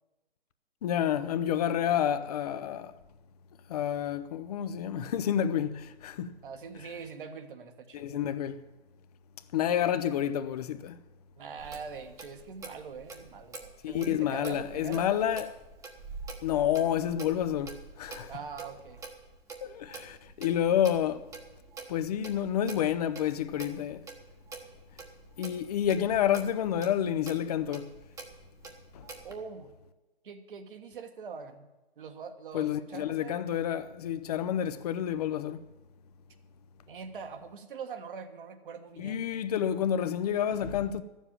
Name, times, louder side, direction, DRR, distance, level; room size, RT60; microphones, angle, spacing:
voice 1, 0.8-2.9 3.7-6.3 7.9-8.6 9.5-11.0 13.8-15.5 16.4-18.3 19.6-21.2 21.9-24.0 25.4-27.9 28.9-29.1 32.5-35.6 39.0-41.0, left 10 dB, 40° left, 0.7 m, -29 dB
voice 2, 6.4-8.3 11.4-15.3 18.3-19.0 29.2-29.7 30.2-31.7 32.0-33.6 36.9-39.3, right 5 dB, 55° right, 1.6 m, -43 dB
Clock, 11.6-29.4, right 4 dB, 10° right, 1.1 m, -47 dB
13.0 x 7.3 x 8.7 m
figure-of-eight pair, 125°, 31 cm